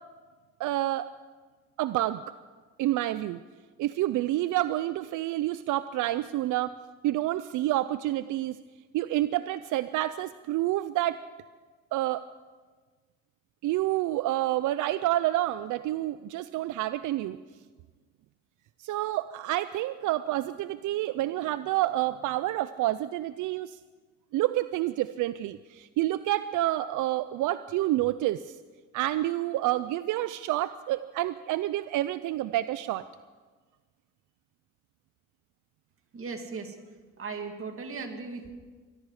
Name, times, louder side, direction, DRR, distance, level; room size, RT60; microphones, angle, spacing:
voice 1, 0.6-1.1 1.8-2.2 2.8-3.4 3.8-6.7 7.0-8.6 8.9-11.2 11.9-12.2 13.6-17.4 18.8-23.8 24.3-28.6 28.9-33.1, right 15 dB, 80° right, 14 dB, 0.5 m, -28 dB
voice 2, 36.1-36.8 37.2-38.5, right 4 dB, 45° right, 4 dB, 2.3 m, -37 dB
24.0 x 12.0 x 4.9 m, 1.4 s
cardioid pair, 90°, 30 cm